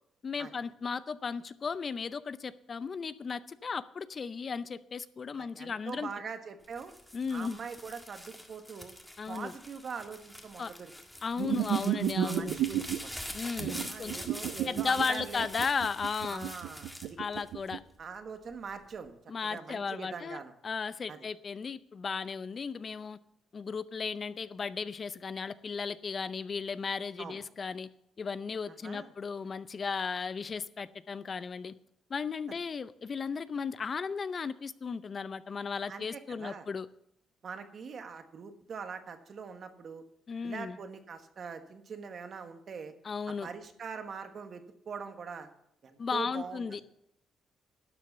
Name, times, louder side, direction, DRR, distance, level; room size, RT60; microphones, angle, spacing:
voice 1, 0.2-6.1 7.1-7.6 9.2-9.5 10.6-10.7 11.2-12.6 13.3-14.3 14.7-16.5 17.2-17.8 19.3-23.2 23.5-27.9 28.2-31.7 32.1-36.9 40.3-40.8 43.0-43.5 46.0-46.8, left 5 dB, 40° left, 0.5 m, -35 dB
voice 2, 5.3-6.9 7.3-8.9 9.3-10.9 12.2-13.3 13.9-15.5 16.3-17.2 18.0-20.5 21.1-21.2 27.2-27.4 28.8-29.1 35.9-36.7 37.4-40.0 40.4-42.9 43.4-45.5 45.8-46.8, right 5 dB, 50° right, 1.4 m, -43 dB
sound 1, 6.6-18.0 18.5-19.1, equal, 5° left, 1.8 m, -45 dB
sound 2, 11.4-13.0 13.6-17.8, right 11 dB, 80° right, 0.5 m, -32 dB
12.0 x 6.8 x 6.7 m
cardioid pair, 90°, 0 cm